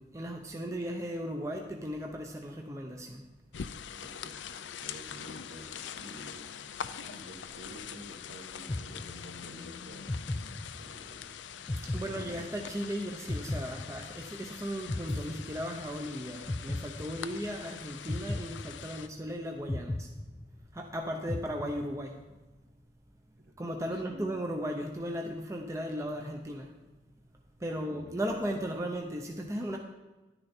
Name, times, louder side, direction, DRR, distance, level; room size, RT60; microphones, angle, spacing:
voice 1, 0.0-3.3 11.8-20.1 20.7-22.2 23.6-26.7 27.6-29.8, equal, 15° right, 2 dB, 0.7 m, -36 dB
sound 1, 3.5-19.1, left 8 dB, 85° left, 0.5 m, -44 dB
voice 2, 4.0-6.5 7.0-10.1 10.7-11.3 12.0-12.4 23.4-24.3 27.7-28.3, equal, 60° right, 2 dB, 1.6 m, -50 dB
sound 2, 8.7-9.6 10.1-11.1 11.7-12.8 13.3-14.5 14.9-16.1 16.5-17.5 18.1-19.2 19.7-20.9 21.3-22.2, left 1 dB, 15° left, 0.3 m, -37 dB
11.0 x 9.9 x 4.4 m, 1.2 s
head